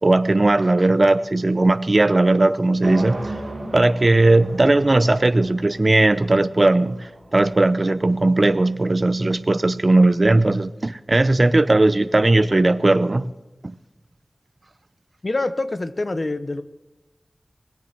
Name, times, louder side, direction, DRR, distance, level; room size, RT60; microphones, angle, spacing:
voice 1, 0.0-3.3 3.7-13.3, right 2 dB, 45° right, 0.6 m, -18 dB
sound 1, 2.8-8.9, right 2 dB, 80° right, 2.4 m, -35 dB
voice 2, 15.2-16.6, left 2 dB, 50° left, 0.9 m, -25 dB
20.5 x 7.1 x 7.8 m
wide cardioid pair, 50°, 0 cm